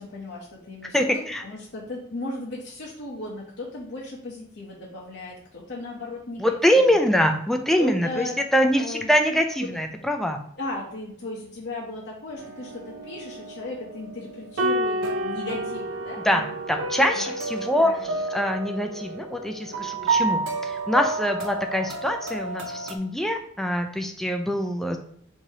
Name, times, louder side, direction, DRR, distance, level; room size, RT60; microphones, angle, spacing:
voice 1, 0.0-6.9 7.8-8.4 8.8-9.1 10.6-16.2 17.1-17.3 17.8-18.1, left 2 dB, 60° left, -4 dB, 0.7 m, -36 dB
voice 2, 0.9-1.4 6.4-10.4 16.2-17.9 18.3-25.0, equal, ahead, 4 dB, 0.3 m, -24 dB
sound 1, 12.4-23.0, right 2 dB, 80° right, 0.5 m, -30 dB
4.7 x 2.7 x 2.7 m, 0.66 s
head